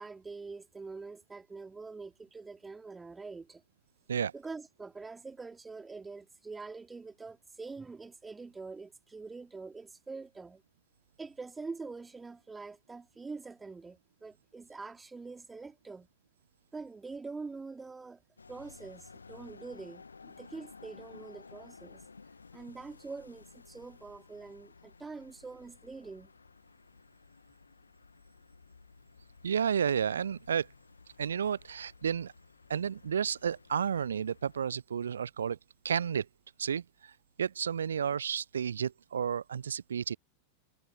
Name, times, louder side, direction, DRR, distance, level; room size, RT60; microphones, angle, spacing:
voice 1, 0.0-3.6 4.3-10.6 11.2-16.1 16.7-18.2 18.5-22.0 22.5-26.3, right 4 dB, 10° right, 3.2 m, -45 dB
sound 1, 18.4-34.7, left 4 dB, 75° left, 2.0 m, -55 dB
voice 2, 29.4-30.7 31.2-32.3 32.7-35.6 35.8-36.3 36.6-37.1 37.4-40.2, right 7 dB, 70° right, 0.7 m, -31 dB
figure-of-eight pair, 90°, 0 cm